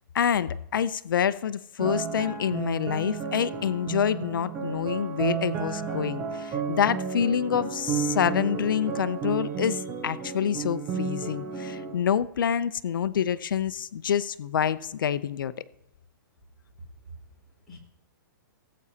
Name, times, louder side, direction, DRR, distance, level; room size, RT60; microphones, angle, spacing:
voice 1, 0.1-15.5, left 8 dB, 75° left, 0.6 m, -27 dB
sound 1, 1.8-12.1, right 6 dB, 25° right, 1.2 m, -32 dB
voice 2, 16.8-17.8, right 2 dB, ahead, 4.4 m, -47 dB
19.5 x 8.4 x 2.9 m
hypercardioid pair, 160°, 11 cm